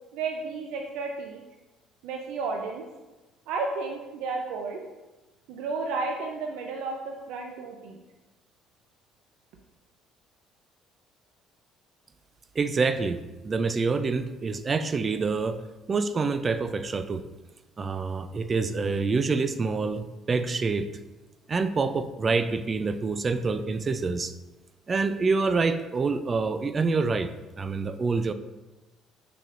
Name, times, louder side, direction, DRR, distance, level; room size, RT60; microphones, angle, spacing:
voice 1, 0.1-1.4 2.0-2.9 3.5-4.8 5.5-8.0, right 4 dB, 85° right, 2 dB, 0.6 m, -32 dB
voice 2, 12.6-15.6 15.9-17.2 17.8-20.9 21.5-24.3 24.9-27.3 27.6-28.3, right 4 dB, 30° right, 11 dB, 0.4 m, -26 dB
6.5 x 5.9 x 2.5 m, 1.1 s
cardioid pair, 110°, 0 cm